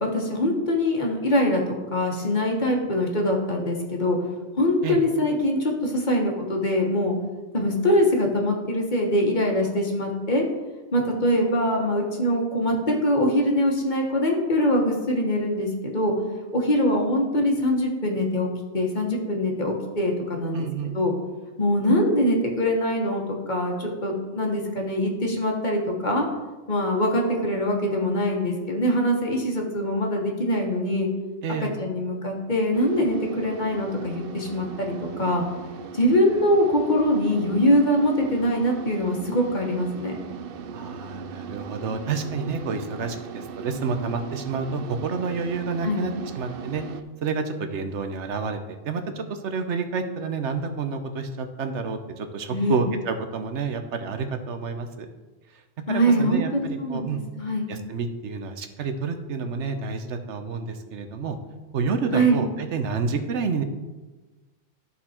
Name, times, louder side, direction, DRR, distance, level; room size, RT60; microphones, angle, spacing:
voice 1, 0.0-4.2 4.5-7.2 7.5-10.4 10.9-16.1 16.5-18.5 18.7-20.6 20.9-21.1 21.6-26.3 26.7-31.1 31.6-35.4 35.9-40.2 45.8-46.1 52.5-52.8 55.9-57.7 62.1-62.4, equal, 45° left, 0 dB, 1.5 m, -23 dB
voice 2, 20.5-21.0 31.4-31.7 40.7-46.8 47.2-55.1 55.9-57.2 57.7-61.4 61.7-63.6, right 5 dB, 90° right, 7 dB, 1.1 m, -29 dB
sound 1, 32.7-47.0, right 6 dB, 65° right, 0.7 m, -38 dB
12.5 x 4.2 x 4.3 m, 1.2 s
omnidirectional pair, 1.2 m